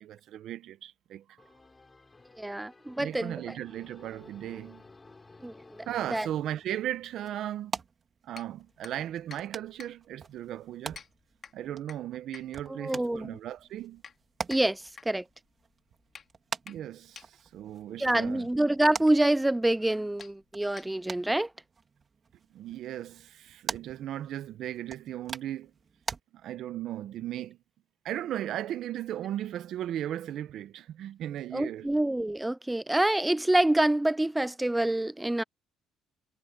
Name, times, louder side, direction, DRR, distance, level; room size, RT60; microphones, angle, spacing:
voice 1, 0.0-1.4 3.0-4.8 5.9-7.8 8.2-11.0 11.5-14.0 16.7-18.5 22.5-25.7 26.3-27.6 28.0-31.9, right 12 dB, 65° right, 0.8 m, -36 dB
sound 1, 1.4-7.0, left 3 dB, 15° left, 4.3 m, -55 dB
voice 2, 2.4-3.6 5.4-5.5 6.1-6.3 12.8-13.4 14.5-15.2 18.0-21.5 31.5-35.4, right 1 dB, 5° right, 0.3 m, -26 dB
sound 2, 6.4-26.2, right 5 dB, 30° right, 3.3 m, -45 dB
sound 3, 8.3-21.3, left 6 dB, 35° left, 2.3 m, -53 dB
cardioid pair, 130°, 0 cm